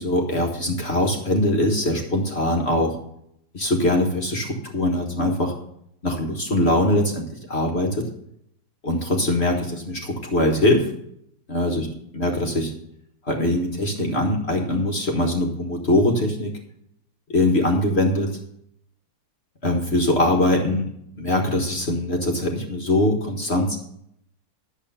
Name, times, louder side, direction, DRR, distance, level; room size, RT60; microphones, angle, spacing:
voice 1, 0.0-3.0 3.5-5.5 6.0-8.0 8.8-10.9 11.5-11.9 12.1-12.7 13.3-16.5 17.3-18.4 19.6-20.9 21.2-23.8, left 1 dB, 35° left, 1 dB, 1.6 m, -22 dB
11.0 x 7.9 x 5.5 m, 0.73 s
omnidirectional pair, 2.0 m